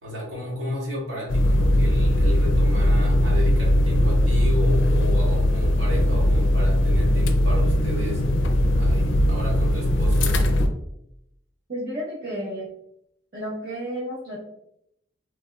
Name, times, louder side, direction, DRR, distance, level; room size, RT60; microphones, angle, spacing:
voice 1, 0.0-10.4, left 1 dB, 75° right, -4 dB, 1.4 m, -33 dB
sound 1, 1.3-10.7, left 1 dB, 75° left, 0.4 m, -19 dB
voice 2, 11.7-12.7 13.3-14.4, equal, 50° right, -10 dB, 0.9 m, -31 dB
3.3 x 2.7 x 2.2 m, 0.76 s
head